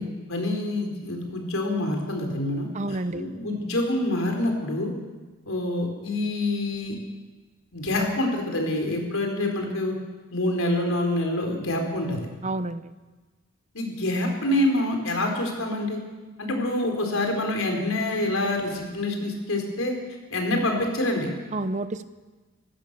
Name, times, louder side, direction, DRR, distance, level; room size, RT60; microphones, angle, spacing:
voice 1, 0.0-4.9 5.5-6.9 7.7-9.9 10.3-12.2 13.7-16.0 16.4-19.9 20.3-21.3, left 1 dB, 85° left, 2 dB, 4.4 m, -26 dB
voice 2, 2.7-3.2 12.4-12.9 21.5-22.1, right 2 dB, 35° right, 13 dB, 0.7 m, -29 dB
26.0 x 15.0 x 6.9 m, 1.3 s
head